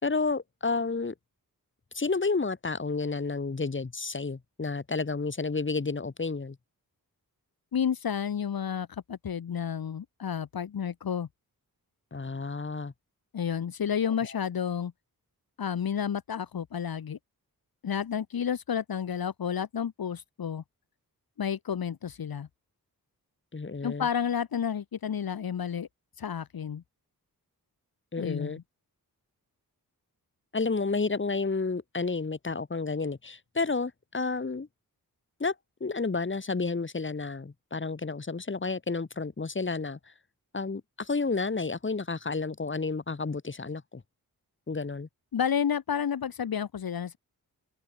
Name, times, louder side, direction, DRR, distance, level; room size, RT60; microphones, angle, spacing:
voice 1, 0.0-1.1 1.9-6.6 12.1-12.9 23.5-24.1 28.1-28.6 30.5-34.7 35.4-35.5 35.8-40.0 40.5-44.0 44.7-45.1, left 4 dB, 35° left, 4.1 m, -31 dB
voice 2, 7.7-11.3 13.3-14.9 15.6-17.2 17.8-20.6 21.4-22.5 23.8-25.9 26.2-26.8 28.2-28.6 45.3-47.2, left 8 dB, 75° left, 1.9 m, -31 dB
wide cardioid pair, 150°, 36 cm